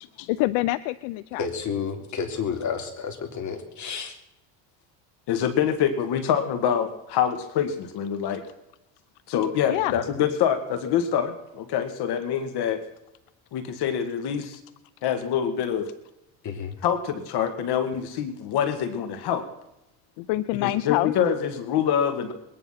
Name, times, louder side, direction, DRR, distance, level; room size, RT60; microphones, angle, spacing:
voice 1, 0.0-1.5 9.7-9.9 20.2-21.1, left 18 dB, 80° left, 16 dB, 0.7 m, -26 dB
voice 2, 1.4-4.1 9.9-10.0 16.4-16.8, left 6 dB, 40° left, 4 dB, 3.5 m, -31 dB
voice 3, 5.3-8.4 9.3-12.8 13.5-14.6 15.0-15.9 16.8-19.5 20.6-22.3, left 8 dB, 60° left, 9 dB, 2.0 m, -25 dB
22.0 x 10.5 x 5.8 m, 0.87 s
supercardioid pair, 110°, 44 cm